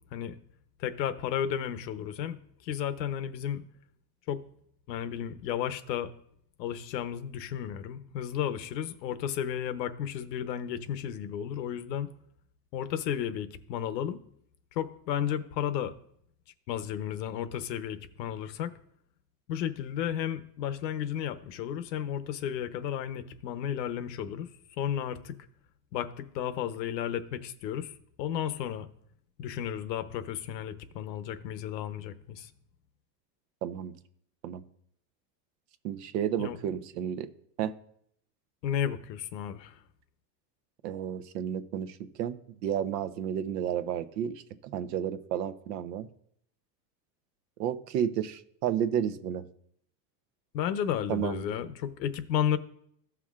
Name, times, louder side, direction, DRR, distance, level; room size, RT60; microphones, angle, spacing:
voice 1, 0.8-3.6 4.3-4.4 4.9-6.1 6.6-12.1 12.7-14.2 14.8-15.9 16.7-18.7 19.5-24.5 24.8-25.4 25.9-28.9 29.4-32.5 36.4-36.6 38.6-39.8 50.5-52.6, left 9 dB, 85° left, 11 dB, 0.9 m, -33 dB
voice 2, 33.6-33.9 34.4-34.6 35.8-37.3 37.6-37.8 40.8-44.4 44.7-46.1 47.6-49.4 51.1-51.5, right 9 dB, 75° right, 12 dB, 0.9 m, -32 dB
15.0 x 5.9 x 2.4 m, 0.69 s
supercardioid pair, 140°, 49 cm